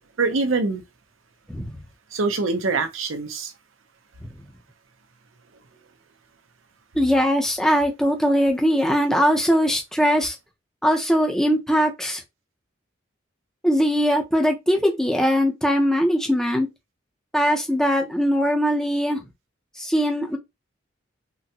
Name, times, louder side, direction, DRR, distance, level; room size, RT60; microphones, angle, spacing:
voice 1, 0.2-0.8 2.1-3.5, right 3 dB, 85° right, 0.8 m, -24 dB
voice 2, 6.9-10.4 10.8-12.2 13.6-16.7 17.3-19.2 19.8-20.4, equal, 5° left, 0.7 m, -21 dB
3.8 x 2.2 x 2.9 m
head